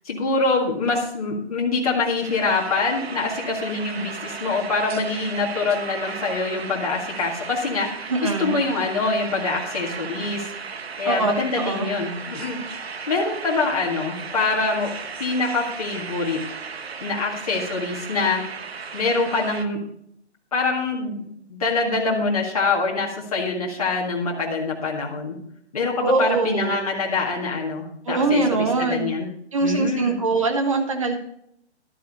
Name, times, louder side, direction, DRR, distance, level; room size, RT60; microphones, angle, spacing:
voice 1, 0.1-10.5 11.0-12.6 13.1-14.9 15.2-16.4 17.0-18.4 18.9-19.8 20.5-25.4 25.7-29.3 29.6-30.2, left 3 dB, 30° left, -3 dB, 2.0 m, -25 dB
sound 1, 2.2-19.6, right 5 dB, 65° right, 1.1 m, -35 dB
voice 2, 8.1-8.6 11.0-11.9 26.0-26.8 28.1-29.1 29.5-31.2, right 3 dB, 30° right, 4 dB, 1.4 m, -22 dB
12.5 x 10.0 x 4.1 m, 0.70 s
hypercardioid pair, 175°, 34 cm